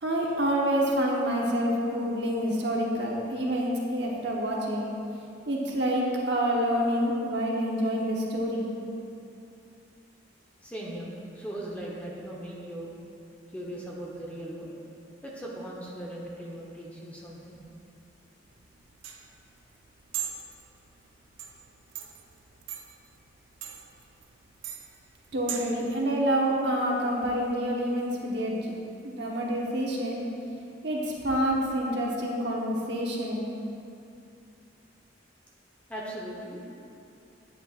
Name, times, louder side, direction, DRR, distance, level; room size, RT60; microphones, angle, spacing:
voice 1, 0.0-4.9 5.5-8.7 25.3-28.7 29.0-30.2 30.8-33.5, equal, 60° right, -2 dB, 1.1 m, -27 dB
voice 2, 10.6-12.9 13.5-14.8 15.2-17.6 35.9-36.6, right 1 dB, 5° left, -4 dB, 0.9 m, -38 dB
sound 1, 18.5-25.8, right 9 dB, 80° right, 0.6 m, -41 dB
9.9 x 7.9 x 2.4 m, 2.7 s
head